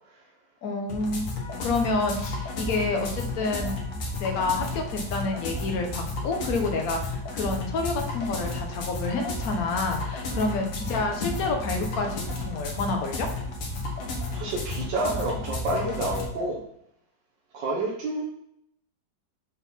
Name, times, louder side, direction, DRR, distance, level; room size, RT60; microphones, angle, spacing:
voice 1, 0.6-1.3 1.6-3.8 4.2-13.3, left 3 dB, 55° left, 3 dB, 1.4 m, -28 dB
sound 1, 0.9-16.3, left 2 dB, 80° left, 2.1 m, -33 dB
voice 2, 14.3-16.6 17.5-18.2, right 2 dB, 75° right, -3 dB, 1.7 m, -29 dB
6.0 x 4.0 x 5.6 m, 0.75 s
omnidirectional pair, 2.0 m